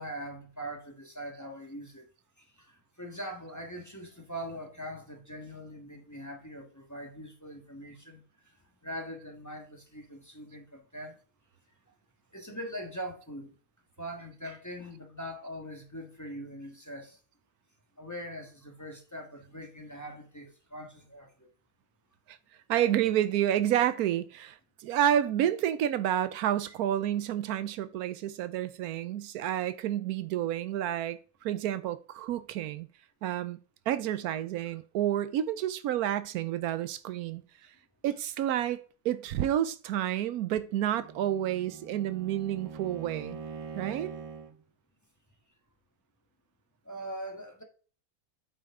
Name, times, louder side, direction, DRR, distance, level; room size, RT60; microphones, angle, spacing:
voice 1, 0.0-2.0 2.4-8.2 8.8-11.2 12.3-13.5 14.0-17.2 18.0-21.5 46.8-47.6, equal, 10° left, 1.5 m, -42 dB
voice 2, 22.7-32.9 33.2-33.6 33.9-37.4 38.0-43.4 43.7-44.1, right 11 dB, 85° right, 1.1 m, -29 dB
Bowed string instrument, 40.7-44.6, right 5 dB, 65° right, 0.3 m, -43 dB
8.5 x 5.6 x 3.6 m
omnidirectional pair, 1.5 m